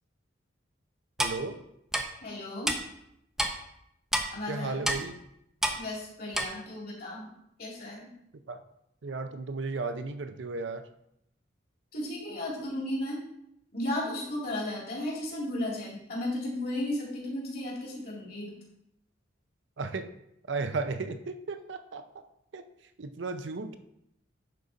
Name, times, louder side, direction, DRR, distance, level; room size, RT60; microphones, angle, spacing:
Clock, 1.2-1.4 1.9-2.0 2.7-2.8 3.4-3.5 4.1-4.3 4.8-5.0 5.6-5.8 6.3-6.5, equal, ahead, 0.6 m, -27 dB
voice 1, 1.2-1.6 4.5-5.2 8.5-8.6 9.0-10.9 19.8-20.1 20.5-22.2 22.5-22.7 23.0-23.8, right 3 dB, 70° right, 9 dB, 0.6 m, -34 dB
voice 2, 2.2-2.7 4.3-4.9 5.8-7.3 7.6-8.1 11.9-13.2 13.7-18.6, left 1 dB, 50° left, -4 dB, 2.6 m, -34 dB
11.0 x 4.0 x 4.0 m, 0.78 s
head